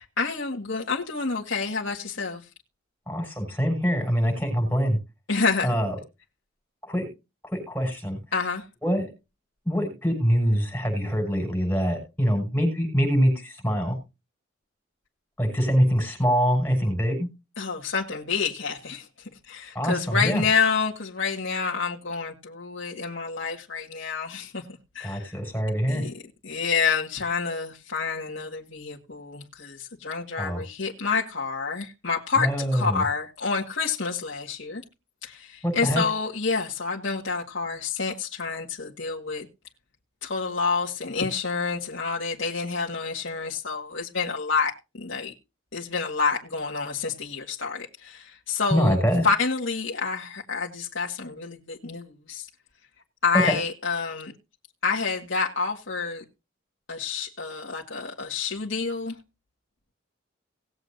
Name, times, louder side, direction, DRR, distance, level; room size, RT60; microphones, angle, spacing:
voice 1, 0.2-2.4 5.3-5.7 8.3-8.7 17.6-19.1 19.5-24.6 25.0-25.3 25.9-26.1 26.4-34.8 35.2-39.5 40.2-45.3 45.7-49.0 49.2-52.5 53.2-54.3 54.8-56.2 56.9-59.2, left 5 dB, 70° left, 1.9 m, -28 dB
voice 2, 3.1-5.0 5.6-5.9 6.8-7.1 7.5-8.2 8.8-9.1 9.6-14.0 15.4-17.3 19.7-20.4 25.0-26.0 30.4-30.6 32.4-33.0 35.6-36.0 48.7-49.2 53.4-53.6, equal, 10° left, 6.7 m, -24 dB
19.5 x 8.0 x 2.7 m
head